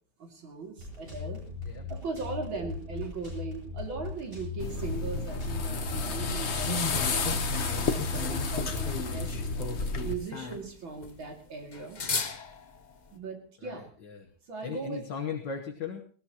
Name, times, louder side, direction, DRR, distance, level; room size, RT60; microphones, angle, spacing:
voice 1, 0.2-1.4 1.9-7.3 7.6-9.4 10.0-12.0 13.1-13.9 14.5-15.0, right 4 dB, 65° right, 2 dB, 3.2 m, -39 dB
sound 1, 0.8-9.4, left 5 dB, 30° right, 7.7 m, -39 dB
voice 2, 2.1-2.6 13.6-14.2 14.6-16.0, left 6 dB, 60° left, 2 dB, 1.9 m, -38 dB
sound 2, 4.6-10.1, left 3 dB, 45° left, 1.0 m, -31 dB
sound 3, 6.7-13.1, left 4 dB, 75° left, 0.4 m, -37 dB
19.5 x 18.0 x 3.0 m, 0.42 s
omnidirectional pair, 2.4 m